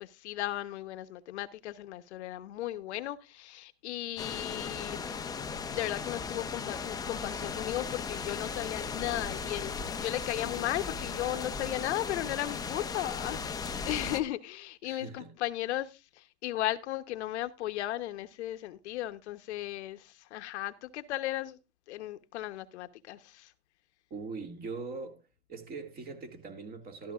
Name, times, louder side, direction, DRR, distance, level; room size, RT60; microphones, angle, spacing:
voice 1, 0.0-5.0 5.4-21.6 21.9-23.5, left 14 dB, 60° left, 1.1 m, -36 dB
sound 1, 4.2-14.2, left 5 dB, 10° left, 0.8 m, -37 dB
voice 2, 14.8-15.3 24.1-25.2 25.5-27.1, right 4 dB, 25° right, 2.3 m, -41 dB
13.5 x 13.0 x 2.5 m
hypercardioid pair, 135°, 39 cm